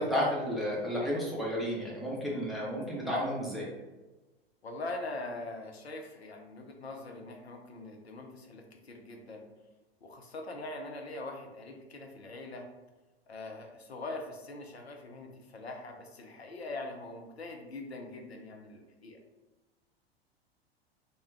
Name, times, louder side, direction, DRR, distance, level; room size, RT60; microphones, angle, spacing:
voice 1, 0.0-3.7, equal, ahead, -6 dB, 0.6 m, -32 dB
voice 2, 4.6-9.4 10.0-12.7 13.3-19.2, left 2 dB, 90° left, 2 dB, 0.5 m, -42 dB
2.2 x 2.1 x 3.3 m, 1.1 s
figure-of-eight pair, 90°, 31 cm